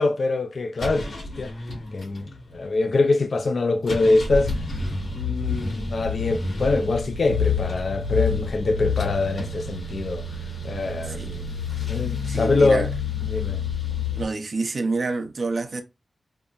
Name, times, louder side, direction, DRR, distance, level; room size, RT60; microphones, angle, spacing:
voice 1, 0.0-1.5 1.9-4.7 5.1-10.3 10.6-11.6 11.9-12.9 13.3-13.6, left 3 dB, 65° left, 0.3 m, -24 dB
sound 1, 0.8-2.6 3.9-14.2, left 5 dB, 80° left, 1.6 m, -29 dB
voice 2, 11.1-11.4 12.3-12.9 14.2-15.8, right 3 dB, 60° right, 0.6 m, -28 dB
5.3 x 2.0 x 2.3 m
wide cardioid pair, 90°, 0 cm